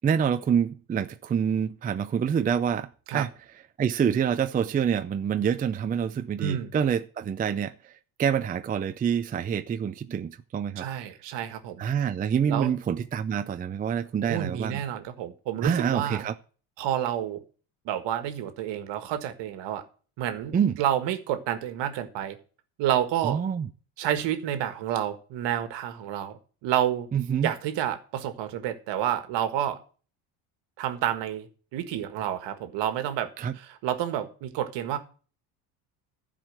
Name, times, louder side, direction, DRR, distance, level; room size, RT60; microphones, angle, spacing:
voice 1, 0.0-3.3 3.8-7.9 8.2-10.9 11.8-14.8 15.6-16.3 20.5-20.8 23.2-23.7 27.1-27.5 33.4-33.6, right 8 dB, 20° right, 0.5 m, -26 dB
voice 2, 6.4-6.7 10.8-11.8 12.5-12.7 14.3-16.3 16.8-17.4 17.8-19.8 20.2-22.4 22.8-23.4 24.0-26.3 26.6-27.1 27.4-29.8 30.8-33.3 33.6-35.0, right 11 dB, 65° right, 1.7 m, -29 dB
12.0 x 5.0 x 7.6 m
supercardioid pair, 100°, 46 cm